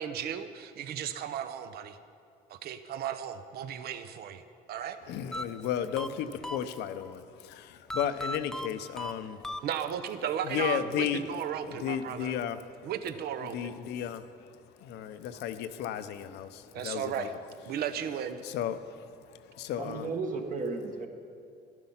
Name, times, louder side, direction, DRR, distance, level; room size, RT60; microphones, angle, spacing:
voice 1, 0.0-2.0 2.5-4.4 4.7-5.0 9.6-12.3 12.8-13.7 16.7-17.3 17.7-18.4, right 9 dB, 70° right, 11 dB, 0.8 m, -35 dB
voice 2, 5.1-9.7 10.4-11.2 11.6-12.9 13.4-17.4 18.4-20.1, left 9 dB, 85° left, 11 dB, 0.7 m, -34 dB
sound 1, 5.3-7.1 7.9-10.2, left 1 dB, 5° left, 0.4 m, -38 dB
voice 3, 19.8-21.1, right 3 dB, 50° right, 4 dB, 1.6 m, -34 dB
12.5 x 11.0 x 5.7 m, 2.5 s
cardioid pair, 110°, 17 cm